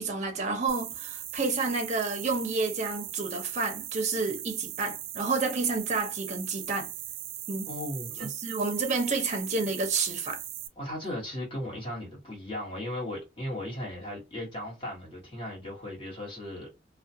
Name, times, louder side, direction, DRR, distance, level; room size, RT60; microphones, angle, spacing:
voice 1, 0.0-6.9 7.5-7.7 8.2-10.4, right 4 dB, 35° right, 0.6 m, -30 dB
sound 1, 0.7-10.7, right 12 dB, 75° right, 0.4 m, -39 dB
voice 2, 7.7-8.3 10.8-16.7, left 1 dB, 30° left, 1.2 m, -37 dB
2.3 x 2.2 x 2.7 m
head